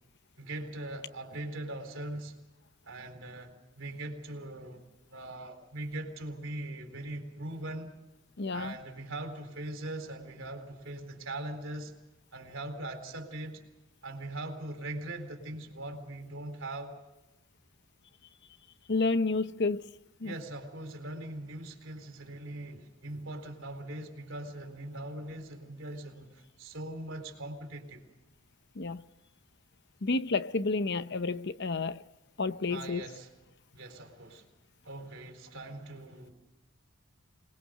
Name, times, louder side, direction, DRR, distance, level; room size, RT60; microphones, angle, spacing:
voice 1, 0.4-2.4 2.8-7.9 8.5-11.9 12.3-13.6 14.0-17.0 20.2-28.1 32.7-33.3 33.7-34.5 34.8-36.3, right 1 dB, 60° right, 4.1 m, -41 dB
voice 2, 8.4-8.7 18.9-19.9 20.2-20.3 28.8-29.0 30.0-32.0 32.4-33.0, left 3 dB, 50° left, 0.7 m, -30 dB
26.0 x 20.5 x 6.5 m
head